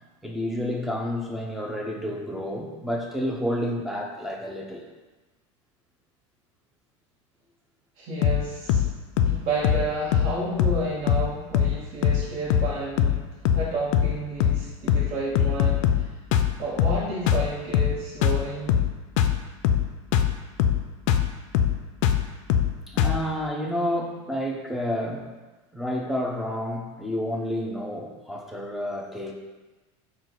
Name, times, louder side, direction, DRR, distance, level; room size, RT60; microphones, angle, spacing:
voice 1, 0.2-4.9 22.9-25.2 25.7-29.3, equal, ahead, -1 dB, 0.6 m, -30 dB
voice 2, 8.0-8.8 9.2-13.2 13.5-16.0 16.6-18.8, right 2 dB, 50° right, -6 dB, 1.0 m, -31 dB
sound 1, 8.2-8.4 8.7-8.9 9.2-9.4 9.6-9.9 10.1-10.3 10.6-10.8 11.1-11.3 11.5-11.8 12.0-12.2 12.5-12.7 13.0-13.2 13.5-13.7 13.9-14.1 14.4-14.6 14.9-15.1 15.4-16.1 16.3-16.5 16.8-17.0 17.3-17.5 17.7-18.0 18.2-18.4 18.7-18.9 19.2-19.4 19.6-19.9 20.1-20.3 20.6-20.8 21.1-21.3 21.5-21.8 22.0-22.2 22.5-22.7 23.0-23.2, left 9 dB, 70° left, 0.4 m, -21 dB
4.5 x 2.3 x 3.9 m, 1.2 s
supercardioid pair, 115°, 16 cm